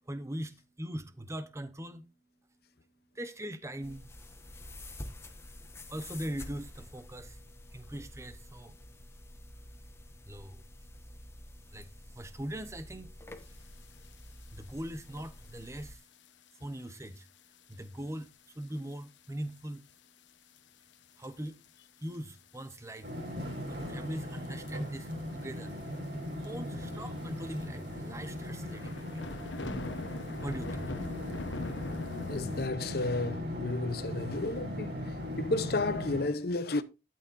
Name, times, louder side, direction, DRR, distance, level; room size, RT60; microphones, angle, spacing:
voice 1, 0.0-2.0 3.1-4.1 5.9-7.4 7.7-8.8 10.2-10.6 11.7-13.1 13.4-13.6 14.5-16.0 16.6-17.3 17.7-19.9 21.2-21.6 22.0-23.1 23.7-25.8 26.4-29.3 30.4-30.9, right 1 dB, 15° right, 0.9 m, -41 dB
sound 1, 3.8-16.0, left 1 dB, 15° left, 1.2 m, -49 dB
sound 2, 14.0-14.1 14.4-14.8 15.5-15.6 16.3-16.4 17.0-17.1 17.4-17.5 17.7-17.8 18.9-19.2 19.6-19.7 20.6-20.7 21.2-21.7 22.0-22.2 22.7-23.4 24.4-24.7 25.0-25.1 25.4-25.5 25.7-25.8 26.4-26.5 26.9-27.0 27.6-32.7, left 2 dB, 85° left, 1.1 m, -41 dB
sound 3, 23.0-36.3, left 1 dB, 60° right, 6.2 m, -39 dB
voice 2, 32.3-36.8, left 2 dB, 55° left, 0.8 m, -32 dB
12.5 x 9.4 x 2.6 m
head